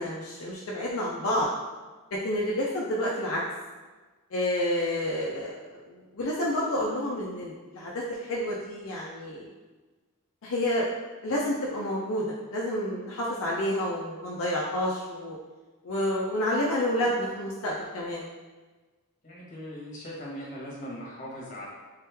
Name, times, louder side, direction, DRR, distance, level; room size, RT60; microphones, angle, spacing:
voice 1, 0.0-1.5 2.1-3.4 4.3-9.5 10.4-10.8 11.2-15.4 15.8-18.3, left 1 dB, 65° left, -4 dB, 0.5 m, -29 dB
voice 2, 19.2-21.7, equal, 35° left, -5 dB, 1.1 m, -39 dB
3.7 x 3.1 x 3.4 m, 1.3 s
head